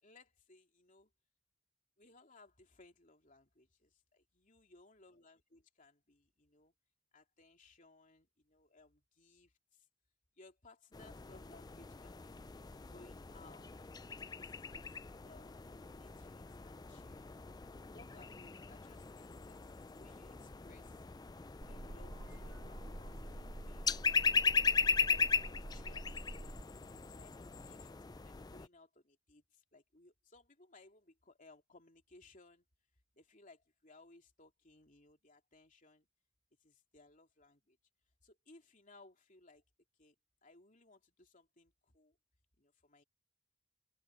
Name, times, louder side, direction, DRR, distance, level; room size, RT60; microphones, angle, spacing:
voice 1, 0.0-1.1 2.0-6.7 7.1-9.9 10.4-12.5 12.9-14.5 14.8-15.0 15.2-21.0 21.6-26.4 27.1-27.9 28.2-32.7 33.1-36.1 36.6-37.8 38.2-39.6 40.0-40.1 40.4-42.2 42.6-43.0, left 2 dB, 40° left, 3.0 m, -63 dB
sound 1, 10.9-28.7, left 5 dB, 20° left, 0.4 m, -38 dB
sound 2, 21.6-26.6, right 1 dB, 50° right, 1.1 m, -48 dB
open air
head